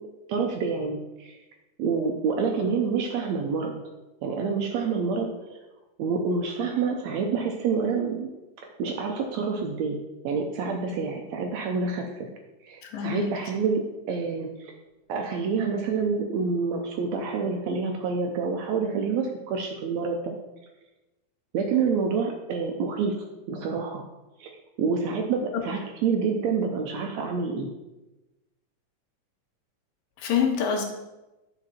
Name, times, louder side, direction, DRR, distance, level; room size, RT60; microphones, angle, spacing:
voice 1, 0.3-1.4 1.8-3.7 4.2-5.6 6.0-8.3 8.6-10.0 10.2-12.3 12.6-14.7 15.1-20.4 21.5-23.1 23.5-24.0 24.4-24.5 24.8-27.7, right 5 dB, 75° right, 2 dB, 1.6 m, -27 dB
voice 2, 12.8-13.3 25.5-25.6 30.2-30.9, left 7 dB, 85° left, 3 dB, 2.7 m, -26 dB
9.9 x 5.0 x 4.3 m, 1.0 s
omnidirectional pair, 3.8 m